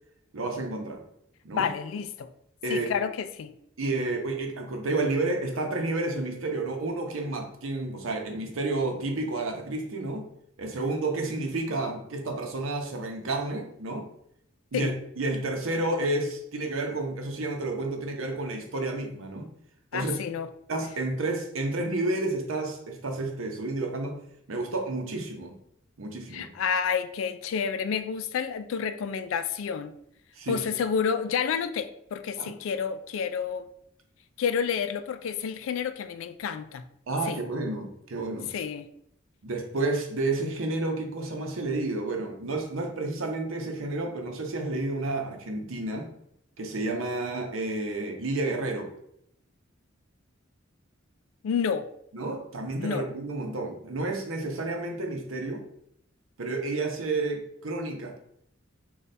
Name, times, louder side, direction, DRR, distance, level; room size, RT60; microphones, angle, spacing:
voice 1, 0.3-1.0 1.4-1.7 2.6-2.9 3.8-10.3 10.6-14.1 14.7-19.5 19.9-20.2 20.7-24.2 24.5-25.6 26.0-26.5 30.4-30.8 32.4-32.5 37.1-38.5 39.4-46.1 46.6-48.9 52.1-55.6 56.4-58.2, right 2 dB, 85° right, 3 dB, 0.7 m, -30 dB
voice 2, 1.5-2.3 2.7-3.5 14.7-14.9 19.9-20.5 26.3-29.9 30.5-33.7 34.4-36.9 37.3-37.4 38.5-38.9 51.4-51.9 52.8-53.1, left 6 dB, 80° left, 11 dB, 0.3 m, -29 dB
3.2 x 2.3 x 4.0 m, 0.73 s
head